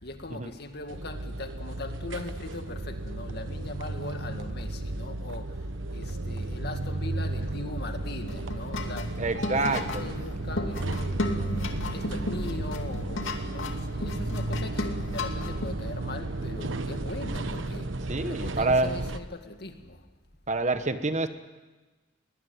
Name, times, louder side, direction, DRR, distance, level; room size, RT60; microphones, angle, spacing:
voice 1, 0.0-11.5 11.9-20.1, left 2 dB, 55° left, 2.2 m, -40 dB
sound 1, 0.9-19.2, right 2 dB, 75° right, 1.2 m, -33 dB
sound 2, 8.2-15.7, left 1 dB, 80° left, 2.4 m, -35 dB
voice 2, 9.2-10.1 18.1-18.9 20.5-21.3, right 2 dB, 35° right, 1.2 m, -27 dB
21.5 x 19.5 x 9.5 m
head